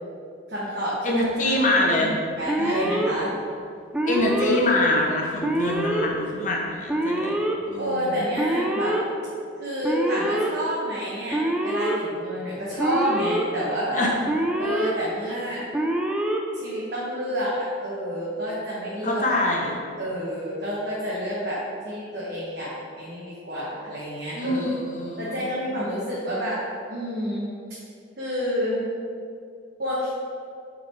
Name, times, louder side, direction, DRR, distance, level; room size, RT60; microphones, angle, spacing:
voice 1, 0.5-1.2 1.7-3.3 7.8-9.0 9.6-14.1 14.6-15.7 16.5-19.2 20.0-24.6 25.2-26.6 26.9-27.5 28.2-28.8 29.8-30.1, equal, 60° right, -8 dB, 1.1 m, -29 dB
voice 2, 1.0-2.1 2.5-3.0 4.1-7.4 7.7-8.2 13.9-14.1 19.0-19.7 24.3-25.5, left 1 dB, 40° left, -1 dB, 0.9 m, -25 dB
Alarm, 2.5-3.1 3.9-4.6 5.4-6.1 6.9-7.5 8.4-9.0 9.8-10.5 11.3-12.0 12.8-13.4 14.3-14.9 15.7-16.4, right 1 dB, 5° right, 0.4 m, -25 dB
5.9 x 4.0 x 4.4 m, 2.4 s
head